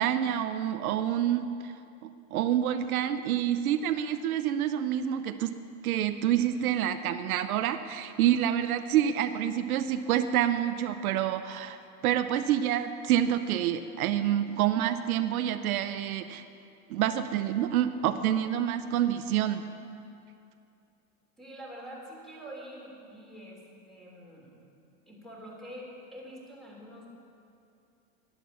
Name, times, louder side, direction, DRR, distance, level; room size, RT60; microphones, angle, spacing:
voice 1, 0.0-1.7 2.3-5.5 5.8-11.8 12.0-16.4 16.9-19.6, right 10 dB, 80° right, 9 dB, 0.8 m, -27 dB
voice 2, 21.4-24.7 25.1-27.1, equal, ahead, -4 dB, 3.3 m, -46 dB
11.5 x 11.0 x 7.1 m, 2.6 s
supercardioid pair, 130°, 43 cm